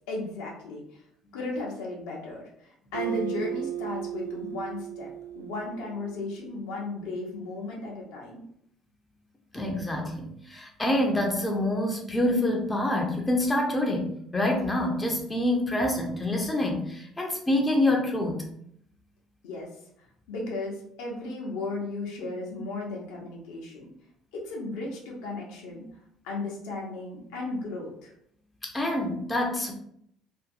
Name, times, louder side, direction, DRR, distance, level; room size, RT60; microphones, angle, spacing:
voice 1, 0.1-1.0 1.3-8.4 19.4-19.7 20.3-23.8 24.3-25.8 26.2-28.1, left 2 dB, 65° left, -2 dB, 0.7 m, -35 dB
Acoustic guitar, 2.9-6.4, right 11 dB, 75° right, 0.3 m, -35 dB
voice 2, 9.5-18.5 28.6-29.7, left 1 dB, 15° left, 1 dB, 0.6 m, -26 dB
2.6 x 2.5 x 2.5 m, 0.69 s
figure-of-eight pair, 55°, 0 cm